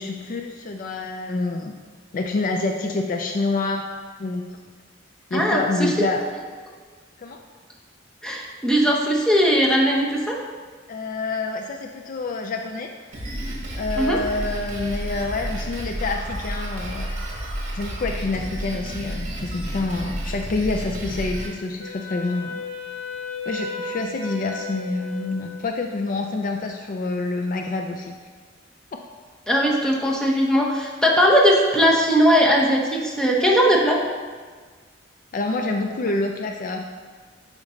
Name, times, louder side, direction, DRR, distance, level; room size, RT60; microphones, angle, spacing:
voice 1, 0.0-1.7 2.1-3.8 4.2-4.4 5.3-6.2 7.2-7.4 10.9-13.3 13.7-17.1 17.7-22.6 23.5-28.2 35.3-36.8, left 3 dB, 45° left, 3 dB, 0.4 m, -27 dB
voice 2, 5.3-5.9 8.2-10.4 14.0-14.2 29.5-34.0, equal, 5° left, -3 dB, 0.9 m, -19 dB
Drum kit, 13.1-21.5, right 1 dB, 45° right, 1.3 m, -31 dB
Wind instrument woodwind instrument, 21.8-26.1, left 3 dB, 65° left, 2.1 m, -34 dB
8.3 x 5.2 x 3.1 m, 1.5 s
head